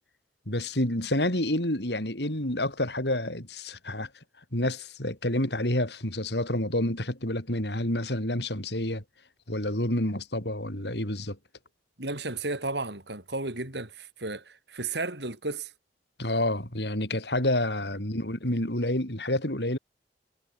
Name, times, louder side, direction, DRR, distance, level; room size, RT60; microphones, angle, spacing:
voice 1, 0.5-4.1 4.5-9.0 9.5-11.4 16.2-19.8, left 1 dB, 70° left, 6.5 m, -28 dB
voice 2, 12.0-15.7, right 2 dB, 70° right, 6.2 m, -33 dB
head